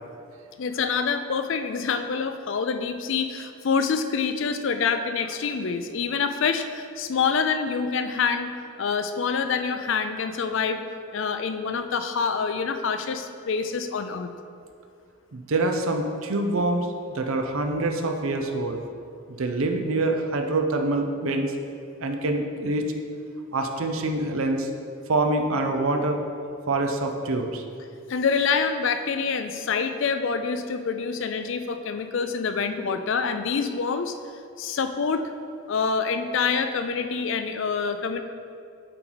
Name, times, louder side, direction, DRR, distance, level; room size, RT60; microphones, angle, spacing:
voice 1, 0.6-8.5 8.8-10.8 11.1-14.3 28.1-34.1 34.6-35.2 35.7-38.2, left 5 dB, 60° left, 8 dB, 0.4 m, -26 dB
voice 2, 15.3-18.8 19.3-21.5 22.0-22.9 23.5-24.7 25.1-26.2 26.7-27.6, right 2 dB, 70° right, 4 dB, 0.6 m, -25 dB
7.8 x 4.5 x 3.9 m, 2.4 s
head